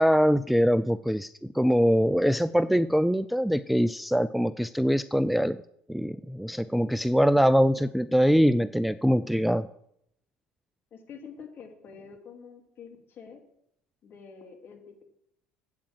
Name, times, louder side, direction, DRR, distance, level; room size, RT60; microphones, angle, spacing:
voice 1, 0.0-5.6 5.9-9.7, equal, ahead, 14 dB, 0.3 m, -23 dB
voice 2, 10.9-13.4 14.0-15.0, left 6 dB, 45° left, 3 dB, 2.5 m, -47 dB
8.5 x 7.3 x 7.4 m, 0.74 s
hypercardioid pair, 65°, 5 cm